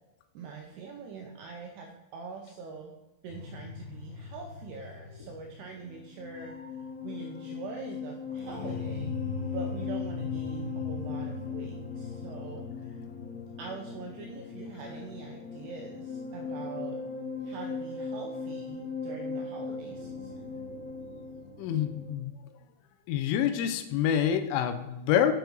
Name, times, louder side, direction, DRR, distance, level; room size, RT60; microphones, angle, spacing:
voice 1, 0.3-2.9 3.2-6.5 7.0-9.1 9.5-13.0 13.6-17.0 17.4-20.5, right 5 dB, 90° right, 1 dB, 2.4 m, -43 dB
sound 1, 3.3-22.1, left 5 dB, 60° left, 3.4 m, -38 dB
voice 2, 21.6-22.3 23.1-25.3, left 9 dB, 90° left, 10 dB, 3.2 m, -27 dB
8.1 x 5.2 x 4.5 m, 0.96 s
omnidirectional pair, 5.5 m